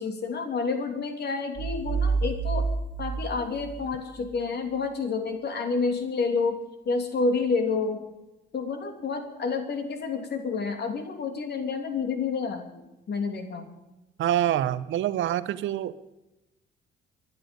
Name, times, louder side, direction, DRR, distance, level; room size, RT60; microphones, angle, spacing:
voice 1, 0.0-2.6 3.0-6.6 6.8-8.0 8.5-12.8 13.1-13.7, left 4 dB, 55° left, 5 dB, 3.1 m, -29 dB
sound 1, 1.6-4.4, right 4 dB, 60° right, 1.6 m, -29 dB
voice 2, 14.2-16.0, right 11 dB, 75° right, 14 dB, 0.9 m, -26 dB
24.5 x 11.0 x 5.4 m, 0.98 s
cardioid pair, 90°, 20 cm